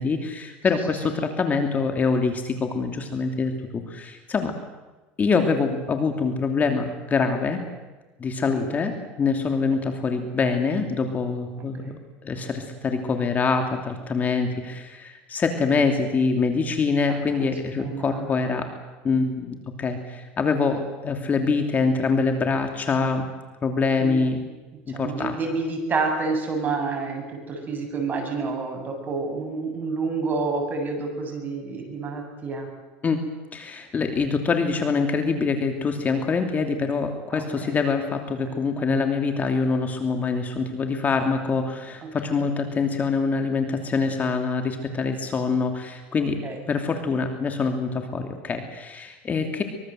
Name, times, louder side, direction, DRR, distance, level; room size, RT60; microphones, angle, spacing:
voice 1, 0.0-4.5 5.2-7.6 8.2-18.7 19.0-23.2 23.6-24.4 25.0-25.4 33.0-33.2 33.5-46.4 46.7-49.6, left 4 dB, 30° left, 5 dB, 3.0 m, -25 dB
voice 2, 11.6-11.9 17.1-17.5 17.8-18.3 24.0-24.2 24.9-32.7 37.3-37.8 38.5-39.0 42.2-42.4 46.4-46.6, right 4 dB, 30° right, 3 dB, 7.8 m, -29 dB
24.5 x 22.5 x 7.8 m, 1.1 s
supercardioid pair, 110°, 6 cm